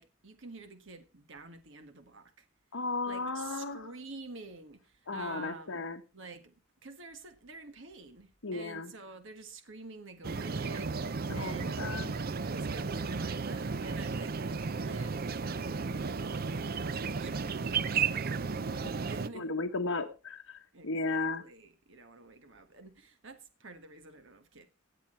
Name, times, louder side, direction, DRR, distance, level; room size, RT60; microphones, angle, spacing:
voice 1, 0.0-2.4 3.0-5.8 6.1-6.5 6.8-11.8 12.4-15.3 15.6-19.7 20.7-24.7, right 3 dB, 65° right, 1.6 m, -49 dB
voice 2, 2.7-3.9 5.1-6.0 8.4-8.9 11.3-12.1 18.8-18.9 19.3-21.4, left 3 dB, 80° left, 1.2 m, -35 dB
sound 1, 10.2-19.3, right 5 dB, 45° right, 0.6 m, -34 dB
17.0 x 8.5 x 4.3 m
head